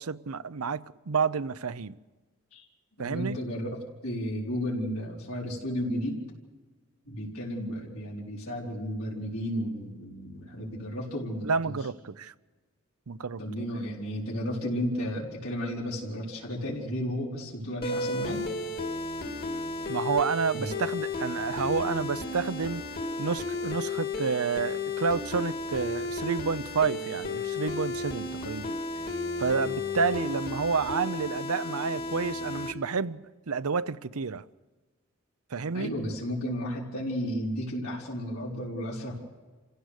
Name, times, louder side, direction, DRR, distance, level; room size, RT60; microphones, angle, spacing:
voice 1, 0.0-2.0 3.0-3.4 11.4-12.3 13.1-13.4 19.9-22.8 23.2-28.8 29.4-33.2 33.5-34.4 35.5-35.9, right 5 dB, 90° right, 0.7 m, -30 dB
voice 2, 3.0-6.2 7.1-11.8 13.4-18.4 20.6-20.7 35.7-39.1, equal, 85° left, 4.5 m, -33 dB
sound 1, 17.8-32.7, left 3 dB, 45° left, 2.1 m, -33 dB
28.0 x 16.0 x 6.6 m
head